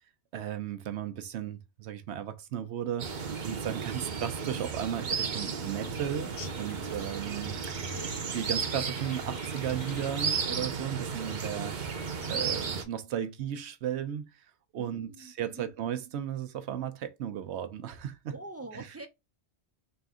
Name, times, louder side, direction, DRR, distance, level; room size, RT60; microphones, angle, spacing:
voice 1, 0.3-6.3 6.6-7.9 8.3-11.8 12.3-14.2 14.7-18.4 18.7-18.9, right 10 dB, 85° right, 0.9 m, -35 dB
sound 1, 3.0-12.8, right 5 dB, 50° right, 0.8 m, -34 dB
sound 2, 6.1-10.6, left 6 dB, 75° left, 0.9 m, -51 dB
voice 2, 7.1-8.2 14.8-15.7 18.3-19.1, right 2 dB, 20° right, 0.4 m, -46 dB
4.0 x 2.6 x 3.5 m
omnidirectional pair, 1.1 m